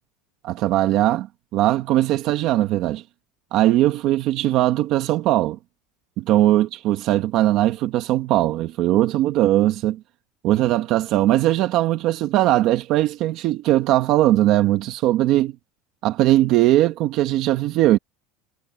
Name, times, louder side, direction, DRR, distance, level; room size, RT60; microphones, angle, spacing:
voice 1, 0.4-1.3 1.5-3.0 3.5-5.6 6.2-10.0 10.4-15.5 16.0-18.0, right 14 dB, 40° right, 1.3 m, -19 dB
cardioid pair, 175°, 0 cm